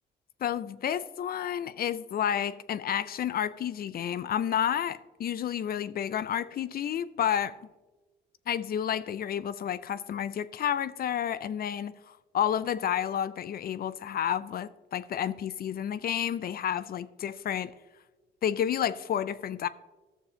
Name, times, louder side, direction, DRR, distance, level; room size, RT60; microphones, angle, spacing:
voice 1, 0.4-7.6 8.5-17.7 18.4-19.7, left 9 dB, 50° left, 0.4 m, -30 dB
13.5 x 6.8 x 2.8 m
cardioid pair, 90°, 20 cm